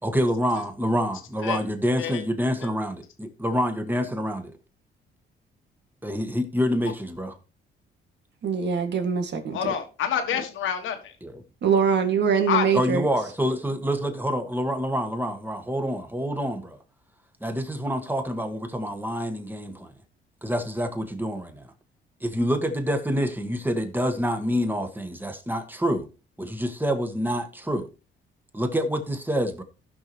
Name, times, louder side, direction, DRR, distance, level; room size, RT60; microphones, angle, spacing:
voice 1, 0.0-4.5 6.0-7.4 11.2-11.4 12.7-16.8 17.4-19.9 20.4-21.7 22.2-26.1 26.4-27.9 28.5-29.6, equal, 10° right, 1.8 m, -27 dB
voice 2, 8.4-9.8 11.6-13.1, right 6 dB, 60° right, 2.1 m, -23 dB
voice 3, 9.5-11.1 12.5-12.6, left 8 dB, 80° left, 1.8 m, -27 dB
16.5 x 5.9 x 3.1 m
cardioid pair, 90°, 20 cm